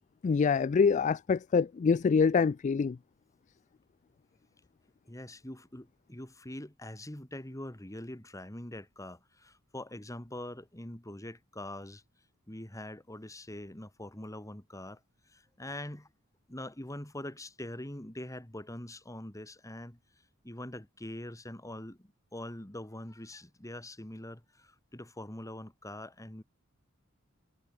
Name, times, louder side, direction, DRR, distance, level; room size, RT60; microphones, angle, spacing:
voice 1, 0.2-3.0, left 5 dB, 35° left, 0.3 m, -25 dB
voice 2, 5.1-12.0 12.5-15.0 15.3-16.1 16.5-20.0 20.4-26.4, left 1 dB, 15° left, 2.4 m, -43 dB
head